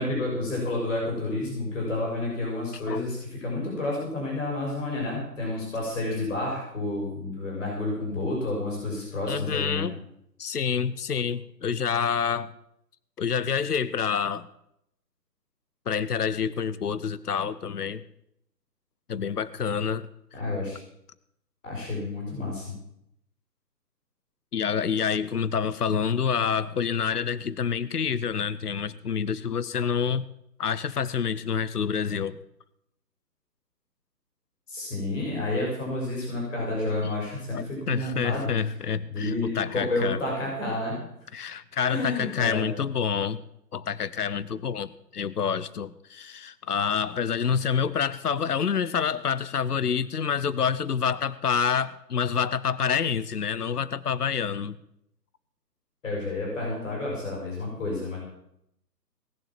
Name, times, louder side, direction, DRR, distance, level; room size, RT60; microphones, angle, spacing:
voice 1, 0.0-9.9 20.3-20.8 21.6-22.7 34.7-38.5 39.1-41.0 41.9-42.7 56.0-58.2, left 2 dB, 50° left, -2 dB, 6.3 m, -30 dB
voice 2, 9.3-9.9 10.4-12.5 13.2-14.5 15.9-18.0 19.1-20.1 24.5-30.3 30.6-32.4 37.5-40.2 41.3-43.4 43.7-54.8, left 7 dB, 65° left, 17 dB, 0.9 m, -27 dB
19.0 x 6.9 x 7.6 m, 0.77 s
figure-of-eight pair, 140°, 50 cm